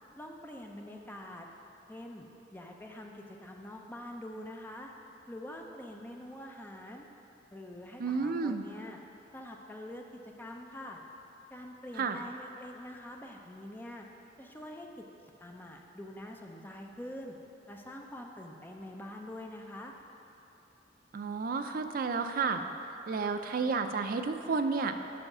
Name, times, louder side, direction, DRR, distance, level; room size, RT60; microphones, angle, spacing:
voice 1, 0.2-1.5 1.9-2.3 2.5-4.9 5.3-7.0 7.5-9.0 9.3-11.0 11.5-14.1 14.4-15.0 15.4-17.4 17.7-19.9, left 1 dB, 10° left, 1 dB, 0.6 m, -45 dB
voice 2, 8.0-8.6 12.0-12.2 21.1-22.6 23.1-25.0, right 4 dB, 50° right, 7 dB, 0.4 m, -31 dB
7.7 x 4.9 x 6.0 m, 2.8 s
head